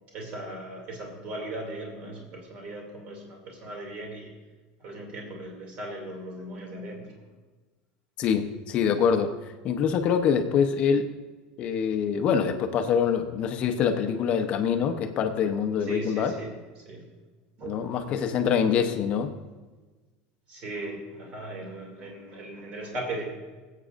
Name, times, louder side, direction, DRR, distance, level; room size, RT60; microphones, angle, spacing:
voice 1, 0.1-4.3 4.8-7.1 15.9-16.5 16.8-17.0 17.6-18.5 20.5-23.2, right 1 dB, 35° right, 0 dB, 2.6 m, -38 dB
voice 2, 8.2-9.3 9.6-11.1 11.6-16.4 17.6-19.3, left 7 dB, 30° left, 6 dB, 0.8 m, -25 dB
23.0 x 8.4 x 2.6 m, 1.3 s
cardioid pair, 175°, 4 cm